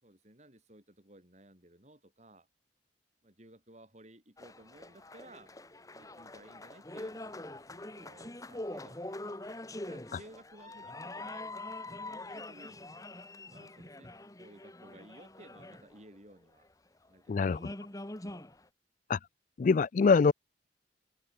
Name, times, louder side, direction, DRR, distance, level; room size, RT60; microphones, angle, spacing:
voice 1, 0.0-2.5 3.2-5.5 5.9-11.5 11.8-12.8 13.4-14.1 14.4-16.7 17.1-18.5, right 1 dB, 40° right, 5.4 m, -57 dB
sound 1, 4.4-16.3 17.1-17.2 17.4-18.6, left 2 dB, 20° left, 1.5 m, -44 dB
voice 2, 17.3-17.6 19.1-19.2 19.6-20.3, left 5 dB, 45° left, 0.3 m, -24 dB
open air
head